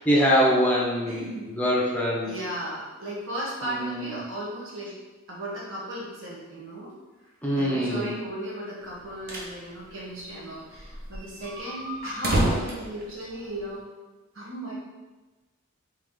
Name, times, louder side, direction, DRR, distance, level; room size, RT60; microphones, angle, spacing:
voice 1, 0.0-1.3 1.6-2.3 3.6-4.2 7.4-8.1, equal, 5° left, -4 dB, 0.6 m, -23 dB
voice 2, 1.0-1.5 2.2-4.9 5.3-6.9 7.2-13.9 14.3-14.7, right 1 dB, 65° right, -6 dB, 1.3 m, -36 dB
sound 1, 8.9-9.6 9.9-10.0 10.2-10.3 10.8-13.8, right 1 dB, 45° right, 0.7 m, -29 dB
3.5 x 2.9 x 3.6 m, 1.2 s
head